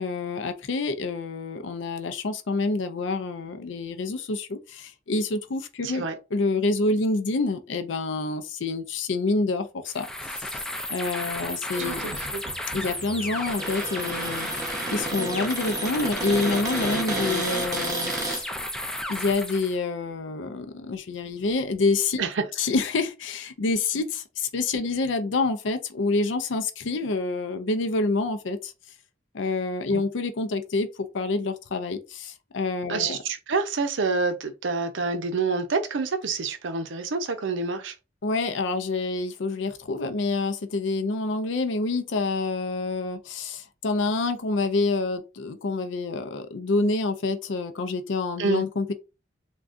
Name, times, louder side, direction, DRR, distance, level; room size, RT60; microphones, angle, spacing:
voice 1, 0.0-6.1 6.3-10.6 10.9-12.0 12.7-14.5 14.9-18.5 19.1-22.2 22.6-28.7 29.3-33.2 38.2-48.9, left 3 dB, 80° left, 0.5 m, -27 dB
voice 2, 5.8-6.2 11.8-12.4 22.2-22.4 29.9-30.0 32.9-38.0 48.4-48.6, right 4 dB, 85° right, 0.6 m, -27 dB
sound 1, 9.9-19.8, left 1 dB, 5° left, 0.3 m, -33 dB
Cupboard open or close, 11.7-18.4, right 2 dB, 20° right, 0.8 m, -32 dB
3.6 x 2.3 x 2.5 m
head